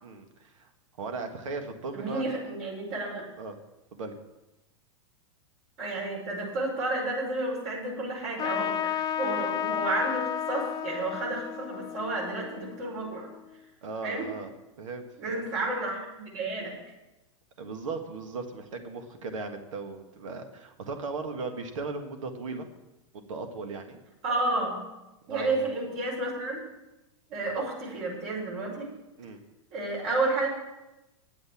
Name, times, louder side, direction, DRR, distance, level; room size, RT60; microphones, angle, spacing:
voice 1, 0.0-0.7 1.0-2.2 3.4-3.6 3.9-4.2 13.8-14.5 14.8-15.4 17.6-22.7 23.1-24.0 25.3-25.6 27.4-27.6 29.2-29.4, right 3 dB, 80° right, 5 dB, 1.8 m, -37 dB
voice 2, 1.9-3.2 5.8-13.3 14.0-14.3 15.2-16.7 24.2-24.8 25.3-26.6 27.3-28.9 29.7-30.5, right 2 dB, 50° right, -3 dB, 5.2 m, -31 dB
Trumpet, 8.4-13.4, left 10 dB, 25° left, 0.8 m, -32 dB
9.9 x 8.0 x 8.4 m, 0.98 s
hypercardioid pair, 120°, 16 cm